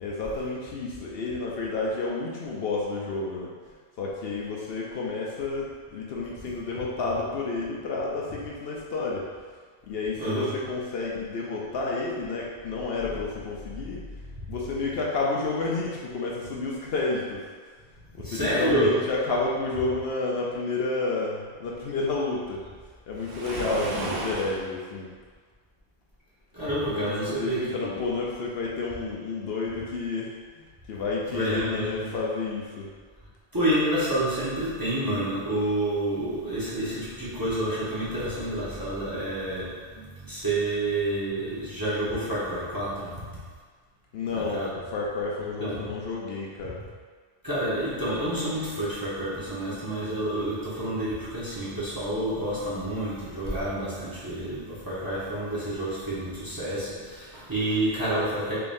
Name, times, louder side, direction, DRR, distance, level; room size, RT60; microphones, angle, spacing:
voice 1, 0.0-9.3 9.8-14.0 14.5-17.5 18.1-25.1 26.9-32.9 44.1-46.8, left 3 dB, 70° left, -4 dB, 0.8 m, -30 dB
voice 2, 10.2-10.5 14.5-14.6 18.2-18.9 26.5-27.9 31.3-32.1 33.5-43.3 44.3-44.7 45.6-45.8 47.4-58.6, right 1 dB, 20° right, -11 dB, 0.9 m, -29 dB
Waves surf, 23.2-24.7, right 2 dB, 75° right, 0.9 m, -33 dB
3.7 x 3.4 x 2.6 m, 1.5 s
omnidirectional pair, 1.1 m